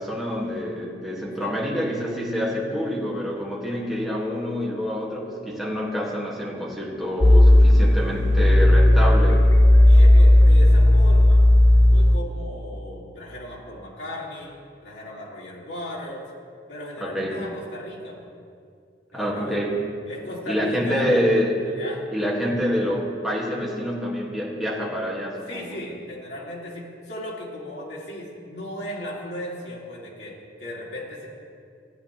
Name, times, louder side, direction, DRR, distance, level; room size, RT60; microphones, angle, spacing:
voice 1, 0.0-9.5 17.0-17.4 19.1-19.8 20.5-21.7 22.1-25.8, equal, ahead, -5 dB, 1.6 m, -27 dB
sound 1, 7.2-12.2, left 1 dB, 15° left, 0.3 m, -14 dB
voice 2, 9.9-11.4 11.9-16.3 16.7-18.3 19.1-19.6 20.1-21.2 21.7-22.0 25.5-31.3, left 1 dB, 75° left, -4 dB, 2.2 m, -36 dB
15.0 x 9.0 x 2.9 m, 2.3 s
head